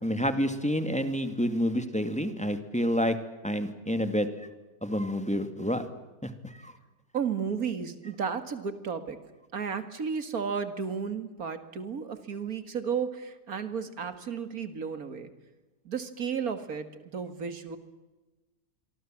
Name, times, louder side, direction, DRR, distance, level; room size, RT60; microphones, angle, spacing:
voice 1, 0.0-3.2 3.4-4.3 4.8-5.9 6.2-6.7, equal, 5° left, 8 dB, 2.0 m, -28 dB
voice 2, 7.1-9.2 9.5-15.3 15.9-16.9 17.1-17.8, right 6 dB, 75° right, 10 dB, 2.4 m, -33 dB
27.0 x 24.0 x 7.6 m, 1.2 s
omnidirectional pair, 1.6 m